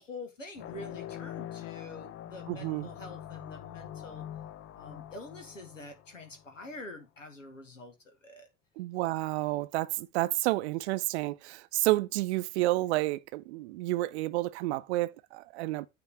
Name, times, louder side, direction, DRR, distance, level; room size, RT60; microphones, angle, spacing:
voice 1, 0.0-4.2 4.7-8.5, left 2 dB, 85° left, 1.4 m, -46 dB
sound 1, 0.5-6.7, left 11 dB, 35° left, 0.6 m, -44 dB
voice 2, 2.5-2.9 8.8-15.9, right 18 dB, 60° right, 0.6 m, -30 dB
9.6 x 3.3 x 6.2 m
figure-of-eight pair, 60°, 37 cm